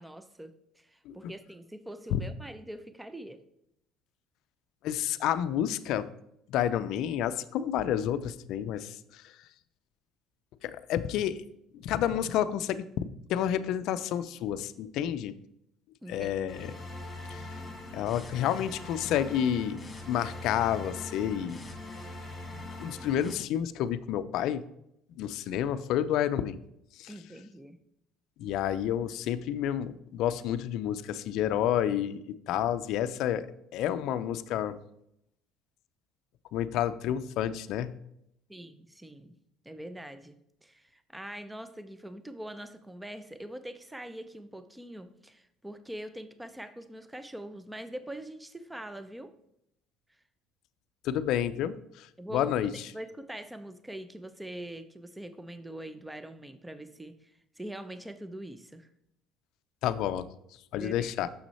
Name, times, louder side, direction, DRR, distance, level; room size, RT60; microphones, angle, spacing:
voice 1, 0.0-3.4 16.0-16.3 27.1-27.8 38.5-39.3 39.6-49.3 52.2-52.5 52.9-58.9 60.8-61.1, right 1 dB, 5° right, 11 dB, 0.6 m, -43 dB
voice 2, 4.8-6.1 6.5-9.3 10.6-11.4 11.7-15.3 16.1-16.7 17.3-17.4 17.9-19.8 20.1-21.6 22.8-24.6 25.2-26.6 27.0-27.1 28.4-33.5 33.7-34.8 36.5-37.9 51.0-52.1 52.3-52.7 59.8-60.3 60.7-61.3, left 10 dB, 65° left, 13 dB, 0.4 m, -30 dB
sound 1, 16.5-23.3, left 2 dB, 20° left, 1.8 m, -42 dB
6.4 x 6.1 x 4.2 m, 0.77 s
supercardioid pair, 100°, 0 cm